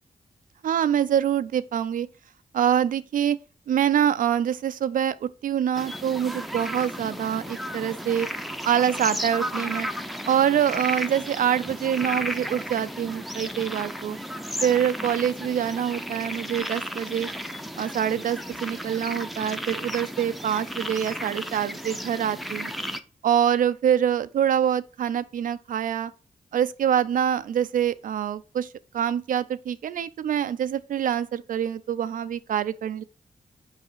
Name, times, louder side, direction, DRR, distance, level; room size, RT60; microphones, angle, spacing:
voice 1, 0.6-2.1 2.5-3.4 3.7-8.3 8.7-9.9 10.3-14.2 14.6-17.3 17.8-22.7 23.2-26.1 26.5-28.7 28.9-33.0, right 9 dB, 70° right, 0.4 m, -25 dB
sound 1, 5.7-23.0, equal, ahead, 0.6 m, -34 dB
5.5 x 4.8 x 4.4 m
cardioid pair, 50°, 14 cm